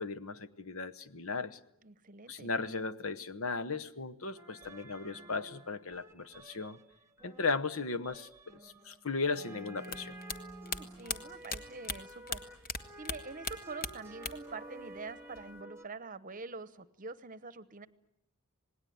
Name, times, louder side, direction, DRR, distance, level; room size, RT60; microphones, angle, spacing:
voice 1, 0.0-1.6 2.3-6.8 7.2-10.1, left 4 dB, 65° left, 13 dB, 1.0 m, -36 dB
voice 2, 1.8-2.5 10.6-12.4 13.0-17.9, right 4 dB, 35° right, 14 dB, 0.9 m, -46 dB
sound 1, 4.4-15.9, right 1 dB, 10° right, 1.2 m, -51 dB
sound 2, 9.8-12.8 13.0-14.6 14.8-15.6, left 5 dB, 40° left, 1.4 m, -38 dB
27.0 x 19.5 x 9.3 m, 0.78 s
head